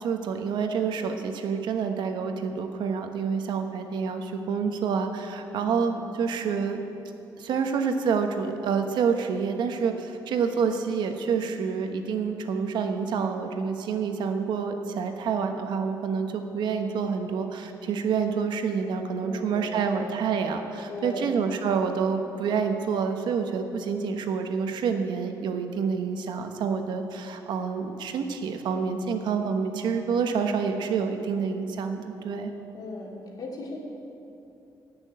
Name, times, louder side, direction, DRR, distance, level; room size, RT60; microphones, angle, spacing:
voice 1, 0.0-6.8 7.4-32.5, right 6 dB, 85° right, 5 dB, 1.2 m, -28 dB
voice 2, 5.5-5.9 19.2-20.1 20.9-21.4 32.7-33.8, left 2 dB, 55° left, -2 dB, 2.8 m, -38 dB
17.5 x 6.3 x 8.8 m, 2.9 s
wide cardioid pair, 165°, 8 cm